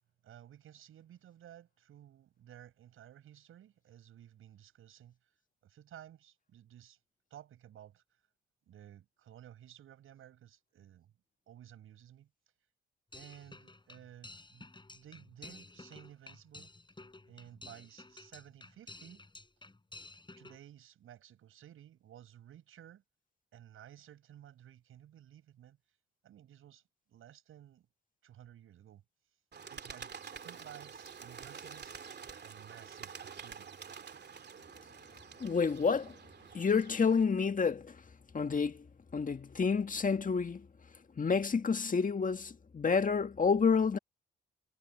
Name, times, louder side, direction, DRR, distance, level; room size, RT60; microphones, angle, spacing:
voice 1, 0.2-5.2 5.6-7.0 7.3-8.0 8.7-11.1 11.5-12.3 13.1-14.7 14.9-16.7 17.2-19.2 20.4-23.0 23.5-25.8 26.2-26.8 27.1-27.9 28.2-29.0 29.7-32.2 32.4-33.9, right 11 dB, 80° right, 7.3 m, -55 dB
sound 1, 13.1-20.6, left 2 dB, 20° left, 6.2 m, -53 dB
Bird, 29.5-37.2, right 6 dB, 55° right, 2.6 m, -48 dB
voice 2, 35.4-36.1 36.5-37.9 38.3-38.8 39.1-40.7 41.2-44.0, left 5 dB, 40° left, 1.9 m, -29 dB
supercardioid pair, 60°, 21 cm